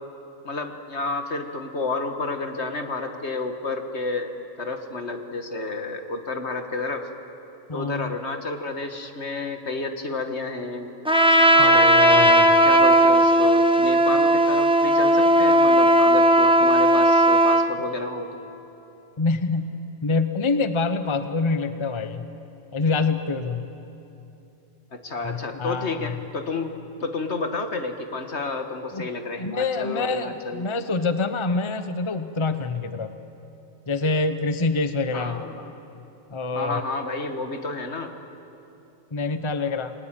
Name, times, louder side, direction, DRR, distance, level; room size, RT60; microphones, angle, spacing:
voice 1, 0.4-4.3 4.6-7.1 7.7-10.9 11.5-18.4 24.9-26.7 27.0-30.7 35.1-35.7 36.5-38.1, left 3 dB, 60° left, 6 dB, 2.0 m, -30 dB
voice 2, 7.7-8.2 11.6-12.6 19.2-19.7 20.0-22.3 22.7-23.7 25.2-26.2 28.9-29.1 29.4-33.1 33.9-35.4 36.3-36.8 39.1-39.9, left 3 dB, 25° left, 9 dB, 0.9 m, -26 dB
Trumpet, 11.1-17.7, right 1 dB, 5° right, 1.3 m, -16 dB
30.0 x 20.5 x 9.0 m, 2.9 s
omnidirectional pair, 1.3 m